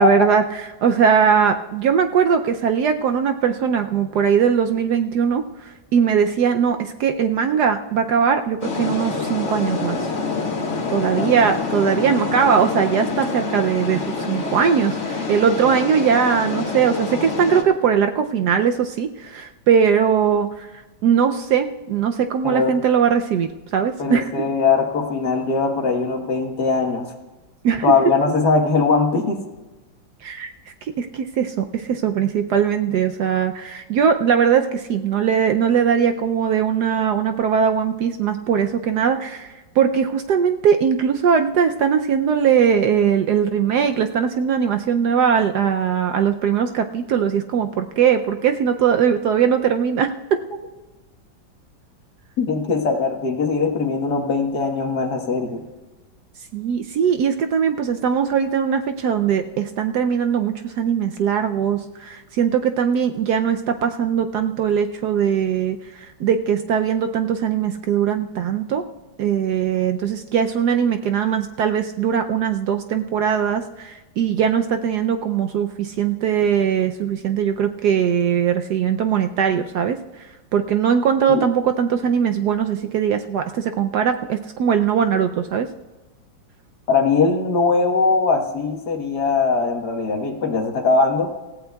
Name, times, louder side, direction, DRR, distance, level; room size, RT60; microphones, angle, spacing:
voice 1, 0.0-10.1 10.9-20.7 21.0-24.3 27.6-27.8 30.2-30.5 31.0-50.1 56.5-68.8 69.2-80.0 80.5-85.7, right 7 dB, 70° right, 7 dB, 1.0 m, -20 dB
sound 1, 8.6-17.6, left 4 dB, 40° left, 1.7 m, -26 dB
voice 2, 22.4-22.8 24.0-27.2 27.8-29.4 52.4-55.6 81.3-81.4 86.9-91.3, left 4 dB, 55° left, 3 dB, 1.8 m, -20 dB
27.0 x 15.0 x 2.3 m, 1.2 s
omnidirectional pair, 2.1 m